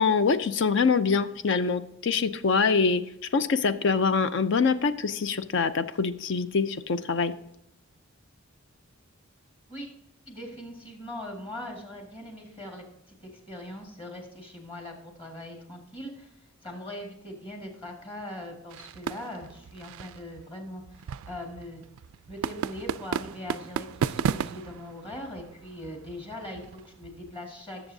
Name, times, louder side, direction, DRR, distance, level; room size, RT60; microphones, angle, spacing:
voice 1, 0.0-3.0 3.3-7.3, left 5 dB, 55° left, 12 dB, 0.5 m, -24 dB
voice 2, 10.3-21.8 22.3-27.9, left 1 dB, 25° left, 1 dB, 1.9 m, -41 dB
sound 1, 18.7-27.3, right 7 dB, 75° right, 0.3 m, -35 dB
18.0 x 7.0 x 2.7 m, 0.83 s
head